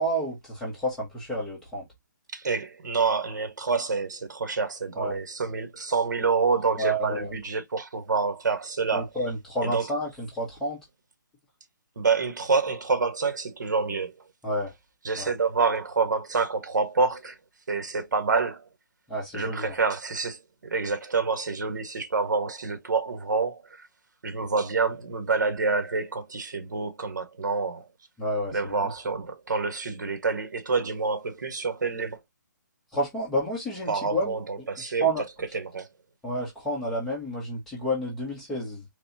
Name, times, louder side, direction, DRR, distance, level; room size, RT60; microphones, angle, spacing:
voice 1, 0.0-1.8 5.0-5.2 6.8-7.3 8.9-10.8 14.4-14.7 15.2-15.3 19.1-19.7 28.2-28.9 32.9-35.2 36.2-38.8, right 1 dB, 5° left, 1.2 m, -30 dB
voice 2, 2.3-9.1 9.6-9.9 11.9-14.1 15.0-17.4 17.7-18.7 19.3-23.9 24.2-27.9 28.5-32.2 33.9-35.1 35.5-35.9, right 4 dB, 70° right, 1.4 m, -27 dB
4.1 x 3.2 x 2.7 m
hypercardioid pair, 175°, 10 cm